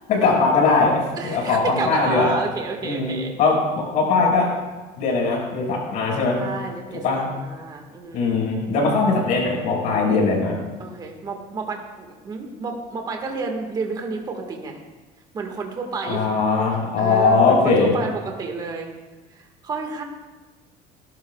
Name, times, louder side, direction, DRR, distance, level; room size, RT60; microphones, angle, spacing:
voice 1, 0.1-2.3 2.8-4.5 5.0-6.4 7.0-7.2 8.1-10.6 16.1-17.9, left 4 dB, 50° left, -1 dB, 5.8 m, -20 dB
voice 2, 1.2-3.4 6.4-8.3 9.9-10.1 10.8-14.8 15.3-16.2 17.0-18.9 19.3-20.0, right 4 dB, 25° right, 2 dB, 1.8 m, -30 dB
30.0 x 12.5 x 2.4 m, 1.2 s
cardioid pair, 165°, 16 cm